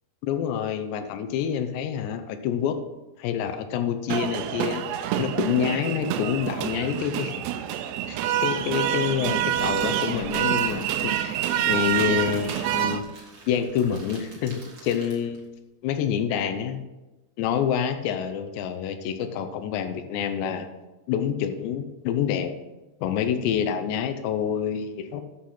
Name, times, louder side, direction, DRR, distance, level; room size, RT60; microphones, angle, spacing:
voice 1, 0.2-2.8 3.2-7.4 8.1-13.0 13.5-15.4 15.8-16.8 17.4-20.7 21.1-22.5 23.0-25.2, left 8 dB, 80° left, 8 dB, 2.7 m, -27 dB
sound 1, 4.1-13.0, right 11 dB, 80° right, 2.6 m, -27 dB
Crackle, 8.7-15.4, right 2 dB, 50° right, 1.0 m, -46 dB
8.4 x 6.5 x 5.8 m, 1.1 s
omnidirectional pair, 5.2 m